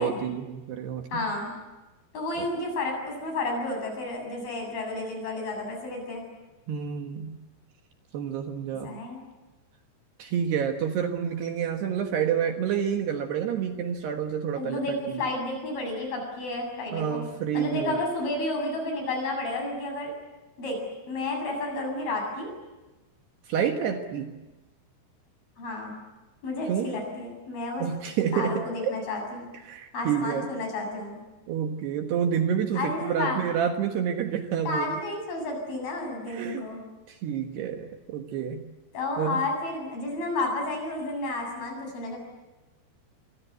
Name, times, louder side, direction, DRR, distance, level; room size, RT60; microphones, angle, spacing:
voice 1, 0.0-1.2 2.4-2.5 6.7-7.3 8.1-8.9 10.2-14.8 15.1-15.2 16.9-18.0 23.5-24.3 26.7-26.9 27.8-29.0 29.6-30.5 31.5-34.9 36.3-36.6 37.1-38.6 39.2-39.4, right 8 dB, 65° right, 5 dB, 3.2 m, -28 dB
voice 2, 1.1-1.6 2.1-6.2 8.8-9.2 14.6-17.2 17.5-20.1 20.6-20.8 21.1-22.5 25.6-26.0 26.4-27.8 28.3-29.5 29.9-31.2 32.7-33.5 34.7-36.8 38.9-42.2, left 2 dB, 50° left, 2 dB, 9.5 m, -31 dB
27.0 x 24.0 x 8.2 m, 1.1 s
omnidirectional pair, 5.6 m